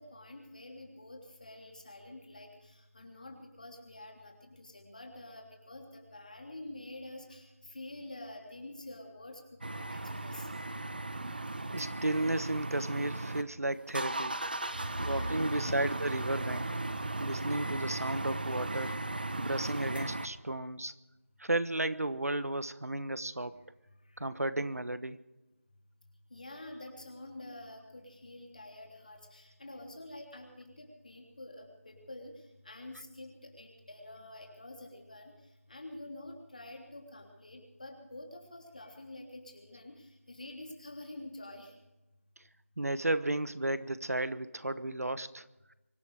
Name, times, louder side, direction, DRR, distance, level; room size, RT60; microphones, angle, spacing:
voice 1, 0.0-10.5 15.0-15.8 23.5-23.6 24.0-24.3 26.3-41.7, left 2 dB, 30° left, 2 dB, 3.3 m, -48 dB
sound 1, 9.6-13.4 13.7-20.3, right 2 dB, 40° right, 1.0 m, -36 dB
voice 2, 11.7-14.4 15.0-16.7 17.2-19.0 19.4-20.9 21.4-23.6 24.2-25.2 42.8-45.4, right 1 dB, 85° right, 14 dB, 1.2 m, -33 dB
24.5 x 12.0 x 5.0 m, 1.0 s
figure-of-eight pair, 175°, 8 cm